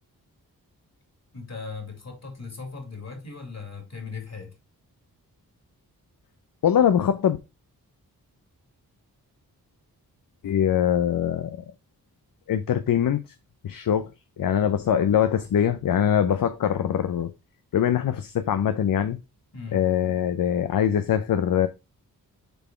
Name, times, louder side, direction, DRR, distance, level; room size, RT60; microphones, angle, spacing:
voice 1, 1.3-4.5 19.5-19.8, left 4 dB, 45° left, 3.2 m, -38 dB
voice 2, 6.6-7.4 10.4-11.6 12.5-13.2 13.6-14.1 14.4-17.3 17.7-19.2 19.7-21.7, left 9 dB, 60° left, 0.6 m, -22 dB
6.9 x 4.2 x 4.4 m
cardioid pair, 50°, 38 cm